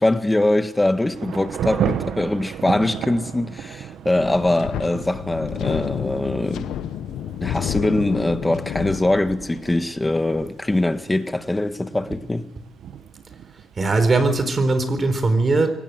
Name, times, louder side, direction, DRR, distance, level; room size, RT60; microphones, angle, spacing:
voice 1, 0.0-6.8 7.4-12.5, left 1 dB, 15° left, 1.6 m, -22 dB
Thunder / Rain, 0.7-15.1, right 9 dB, 70° right, 1.4 m, -34 dB
Wind, 4.2-9.8, left 11 dB, 80° left, 1.1 m, -30 dB
voice 2, 13.8-15.7, right 3 dB, 35° right, 4.2 m, -19 dB
23.5 x 19.0 x 8.0 m
cardioid pair, 90°, 0 cm